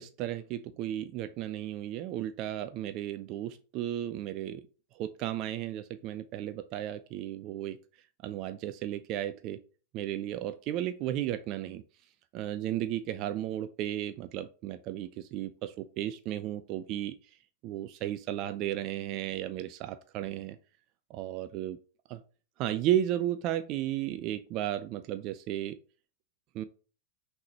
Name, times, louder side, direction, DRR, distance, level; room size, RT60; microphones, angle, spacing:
voice 1, 0.0-4.6 4.9-7.8 8.2-9.6 9.9-11.8 12.3-17.1 17.6-20.6 21.1-21.8 22.1-22.2 22.6-25.8 26.5-26.6, right 12 dB, 40° right, 11 dB, 0.3 m, -34 dB
5.5 x 3.3 x 2.9 m, 0.37 s
figure-of-eight pair, 90°, 0 cm